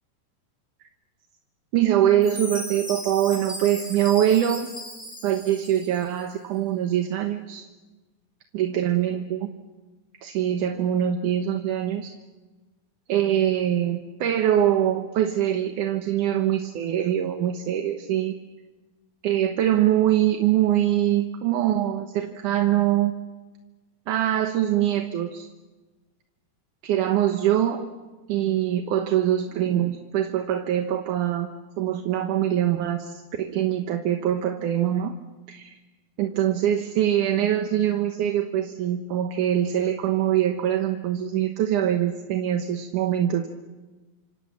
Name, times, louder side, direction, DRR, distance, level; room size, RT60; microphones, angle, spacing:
voice 1, 1.7-4.7 5.2-7.7 8.5-9.5 10.2-12.1 13.1-18.3 19.2-23.1 24.1-25.5 26.8-27.8 28.3-31.5 31.8-35.1 35.5-35.8 36.2-43.5, right 11 dB, 65° right, 5 dB, 2.3 m, -23 dB
Chime, 2.2-6.2, equal, 10° left, 7.4 m, -37 dB
27.0 x 26.5 x 7.2 m, 1.2 s
omnidirectional pair, 4.4 m